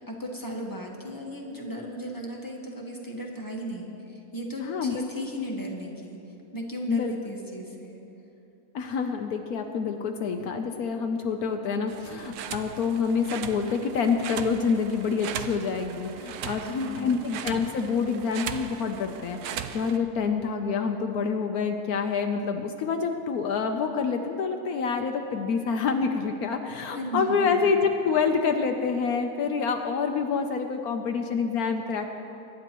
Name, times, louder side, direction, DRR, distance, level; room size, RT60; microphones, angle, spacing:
voice 1, 0.1-6.2 6.5-8.0 16.6-17.2 26.9-27.8, equal, 15° left, -1 dB, 1.3 m, -36 dB
voice 2, 4.6-5.1 6.9-7.1 8.7-32.2, left 5 dB, 70° left, 5 dB, 1.1 m, -27 dB
sound 1, 11.9-20.0, right 8 dB, 75° right, 1.1 m, -38 dB
23.5 x 11.0 x 3.0 m, 2.8 s
omnidirectional pair, 1.7 m